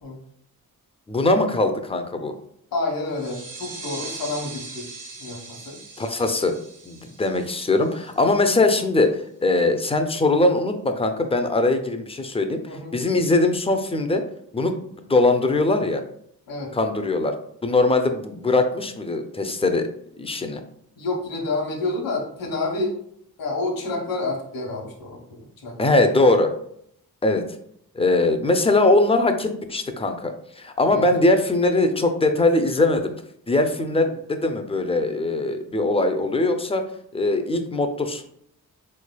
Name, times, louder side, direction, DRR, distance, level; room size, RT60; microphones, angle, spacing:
voice 1, 1.1-2.3 6.0-6.6 6.9-14.2 14.5-16.0 16.7-17.4 17.6-19.9 20.2-20.6 25.8-26.5 27.2-27.4 27.9-33.1 33.5-36.8 37.1-38.2, left 2 dB, 15° left, 7 dB, 0.3 m, -21 dB
voice 2, 2.7-4.9 5.2-5.8 12.7-13.0 16.5-16.7 21.0-22.9 23.4-26.0 30.9-31.1, left 2 dB, 65° left, 0 dB, 1.0 m, -29 dB
sound 1, 3.1-8.5, right 3 dB, 55° right, 0.6 m, -40 dB
3.9 x 3.2 x 2.2 m, 0.69 s
wide cardioid pair, 100°, 37 cm